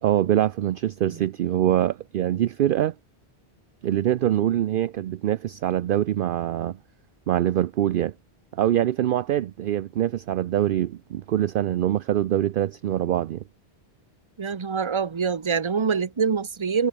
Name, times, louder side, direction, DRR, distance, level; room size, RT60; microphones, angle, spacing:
voice 1, 0.0-2.9 3.8-6.8 7.3-8.1 8.5-13.4, right 12 dB, 60° right, 0.6 m, -24 dB
voice 2, 14.4-16.9, right 6 dB, 30° right, 0.8 m, -25 dB
omnidirectional pair, 1.1 m